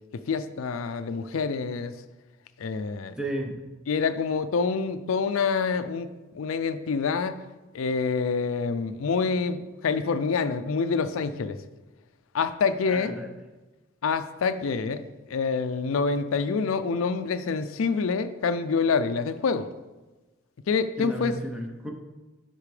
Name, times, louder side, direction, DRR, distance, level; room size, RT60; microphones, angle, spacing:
voice 1, 0.1-1.9 2.6-3.1 3.9-6.1 6.3-7.4 7.7-11.6 12.3-13.1 14.0-19.7 20.7-21.4, left 5 dB, 85° left, 12 dB, 0.4 m, -26 dB
voice 2, 3.2-3.6 12.9-13.3 21.0-21.9, right 1 dB, 5° right, 0 dB, 0.8 m, -33 dB
8.3 x 5.8 x 3.3 m, 1.2 s
head